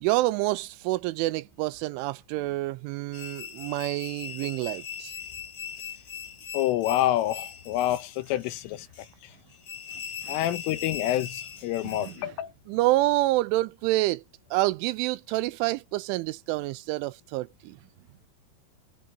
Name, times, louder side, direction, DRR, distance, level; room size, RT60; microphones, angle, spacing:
voice 1, 0.0-5.1 10.2-10.4 11.8-12.4 12.7-14.2 14.5-17.8, right 18 dB, 85° right, 2.9 m, -28 dB
sound 1, 3.1-12.2, left 8 dB, 50° left, 1.4 m, -40 dB
voice 2, 6.5-8.9 10.3-12.5, left 13 dB, 85° left, 3.7 m, -27 dB
omnidirectional pair, 5.7 m